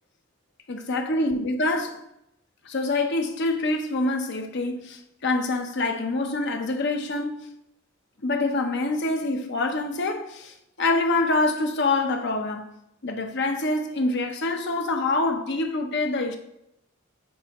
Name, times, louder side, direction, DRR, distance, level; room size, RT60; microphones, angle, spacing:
voice 1, 0.7-2.0 2.6-7.5 8.2-12.7 13.0-16.4, left 2 dB, 60° left, 0.9 m, -26 dB
7.3 x 4.6 x 3.0 m
head